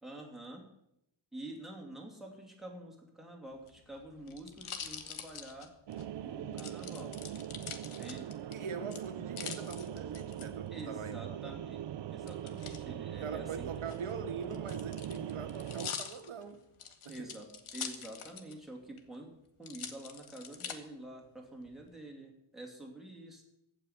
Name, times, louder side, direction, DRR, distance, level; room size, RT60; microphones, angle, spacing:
voice 1, 0.0-0.6 1.3-5.7 6.2-7.2 7.8-8.3 10.7-11.8 12.1-13.7 17.1-19.3 19.6-23.4, right 1 dB, ahead, 2.8 m, -47 dB
sound 1, 3.5-6.0 6.6-8.5 8.9-10.4 12.3-12.8 13.7-18.6 19.0-19.1 19.6-20.8 21.4-21.9, left 7 dB, 85° left, 1.5 m, -44 dB
sound 2, 5.9-15.9, right 10 dB, 60° right, 0.5 m, -41 dB
voice 2, 8.5-11.6 13.1-16.6 17.0-17.3, right 5 dB, 85° right, 1.6 m, -42 dB
15.5 x 6.2 x 9.0 m
wide cardioid pair, 175°, 48 cm